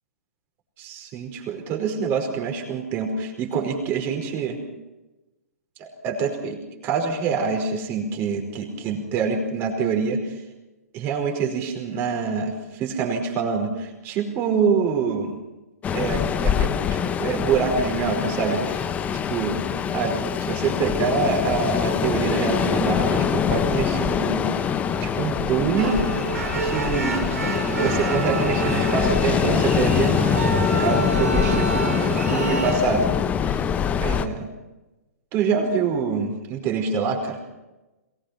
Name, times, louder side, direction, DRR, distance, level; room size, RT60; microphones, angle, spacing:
voice 1, 0.8-4.6 5.8-10.4 10.9-15.4 15.9-19.6 19.9-24.6 24.9-26.0 26.6-30.3 30.7-33.1 33.5-33.6 34.0-34.5 35.3-37.4, right 5 dB, 30° right, 3 dB, 5.0 m, -26 dB
Ocean, 15.8-34.3, left 7 dB, 15° left, 1.0 m, -24 dB
sound 1, 25.8-32.8, right 3 dB, 75° right, 5.0 m, -28 dB
23.0 x 20.0 x 5.9 m, 1.1 s
figure-of-eight pair, 120°, 8 cm